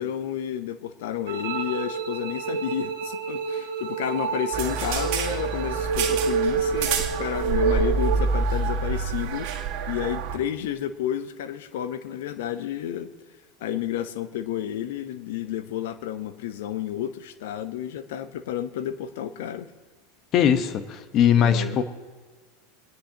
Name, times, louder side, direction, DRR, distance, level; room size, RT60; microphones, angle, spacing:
voice 1, 0.0-13.1 13.6-19.7 21.4-21.8, left 10 dB, 75° left, 12 dB, 0.8 m, -31 dB
sound 1, 1.3-8.3, right 5 dB, 90° right, 1.6 m, -28 dB
sound 2, 4.5-10.4, right 4 dB, 65° right, 1.8 m, -27 dB
voice 2, 20.3-21.8, left 8 dB, 45° left, 10 dB, 1.1 m, -20 dB
25.0 x 10.0 x 2.9 m, 1.4 s
hypercardioid pair, 95°, 0 cm